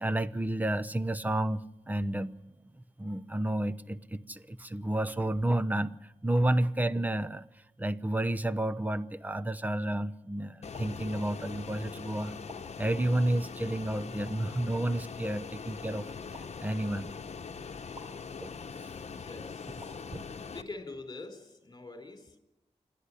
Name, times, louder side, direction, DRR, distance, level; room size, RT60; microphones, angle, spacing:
voice 1, 0.0-1.6 1.9-2.3 2.7-7.5 7.8-12.3 12.8-16.1 16.3-17.1 18.4-18.5 20.1-20.2, right 1 dB, 15° right, 11 dB, 0.9 m, -31 dB
Fixed-wing aircraft airplane, 10.6-20.6, left 5 dB, 60° left, 1.1 m, -42 dB
sound 1, 10.7-10.9 12.5-12.6 14.3-14.4 16.3-16.5 17.9-18.1 19.8-20.0, left 1 dB, 35° right, 4.3 m, -48 dB
voice 2, 19.1-20.0 20.5-22.4, left 3 dB, 30° left, 6 dB, 4.0 m, -45 dB
28.0 x 12.0 x 9.9 m, 0.93 s
wide cardioid pair, 90°, 13 cm